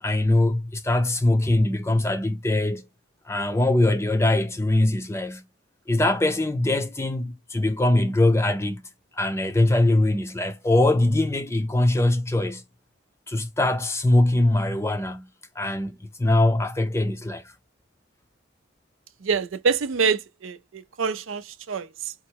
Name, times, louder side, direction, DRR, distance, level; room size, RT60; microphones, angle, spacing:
voice 1, 0.0-2.9 3.3-5.4 5.9-8.8 9.1-12.6 13.3-15.3 15.6-17.4, left 1 dB, 15° left, 0.5 m, -22 dB
voice 2, 19.2-22.1, right 5 dB, 85° right, 0.5 m, -26 dB
4.5 x 2.0 x 4.5 m
head